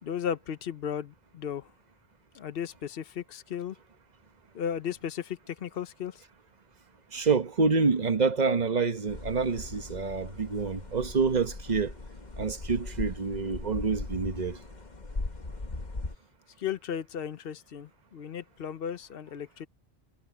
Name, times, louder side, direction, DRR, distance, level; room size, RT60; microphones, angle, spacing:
voice 1, 0.0-1.7 2.3-3.7 4.5-6.2 16.6-19.7, left 8 dB, 65° left, 1.1 m, -35 dB
voice 2, 7.1-11.9 12.4-14.6, right 4 dB, 45° right, 1.2 m, -27 dB
sound 1, 9.1-16.2, left 2 dB, 45° left, 1.7 m, -39 dB
omnidirectional pair, 1.1 m